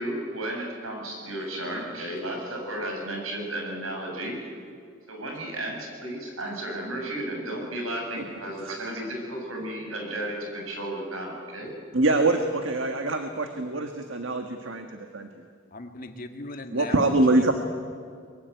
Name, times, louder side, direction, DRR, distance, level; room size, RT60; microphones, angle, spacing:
voice 1, 0.0-4.4 5.1-11.7, right 1 dB, 90° right, 1 dB, 7.3 m, -33 dB
voice 2, 11.9-15.3 16.7-17.5, right 2 dB, 65° right, 5 dB, 1.6 m, -24 dB
voice 3, 15.7-17.5, left 2 dB, 45° left, 6 dB, 2.0 m, -38 dB
23.5 x 22.5 x 9.5 m, 2.3 s
head